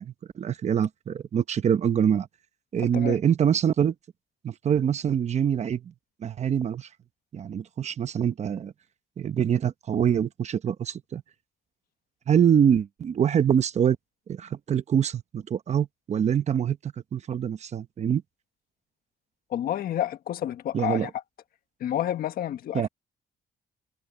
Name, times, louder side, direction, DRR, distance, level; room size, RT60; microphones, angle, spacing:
voice 1, 0.0-2.3 2.7-3.9 4.4-5.9 6.2-6.9 7.3-8.7 9.2-11.2 12.3-14.0 14.3-18.2 20.7-21.1 22.7-22.9, right 8 dB, 45° right, 1.0 m, -25 dB
voice 2, 19.5-21.1 21.8-22.9, left 11 dB, 75° left, 1.4 m, -29 dB
cardioid pair, 120°, 15 cm